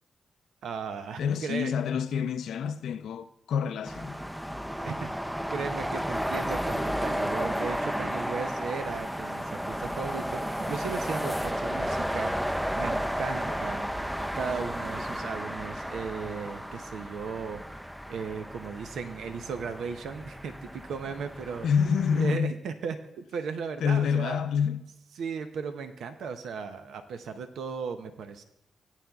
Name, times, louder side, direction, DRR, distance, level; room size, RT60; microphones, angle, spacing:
voice 1, 0.6-1.7 4.8-5.1 5.5-13.9 14.3-21.7 22.1-24.4 25.2-28.4, right 5 dB, 85° right, 0.6 m, -36 dB
voice 2, 1.2-4.2 21.6-22.5 23.8-24.9, left 7 dB, 85° left, 0.4 m, -27 dB
sound 1, 3.9-22.4, equal, 5° right, 0.4 m, -33 dB
sound 2, 9.7-15.2, right 2 dB, 45° right, 1.1 m, -42 dB
18.5 x 9.0 x 2.3 m
cardioid pair, 60°, 0 cm